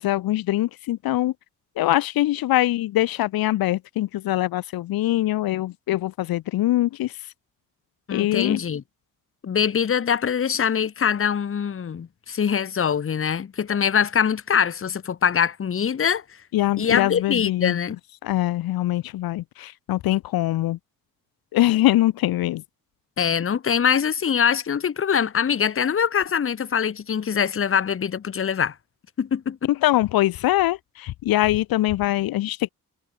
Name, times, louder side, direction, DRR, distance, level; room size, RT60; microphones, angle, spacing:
voice 1, 0.0-1.3 1.8-7.1 8.1-8.6 16.5-17.8 18.2-20.8 21.5-22.6 29.8-32.7, left 15 dB, 85° left, 0.7 m, -23 dB
voice 2, 8.1-8.8 9.4-16.4 16.8-18.0 23.2-28.7 29.2-29.7, left 7 dB, 40° left, 1.0 m, -23 dB
cardioid pair, 80°, 35 cm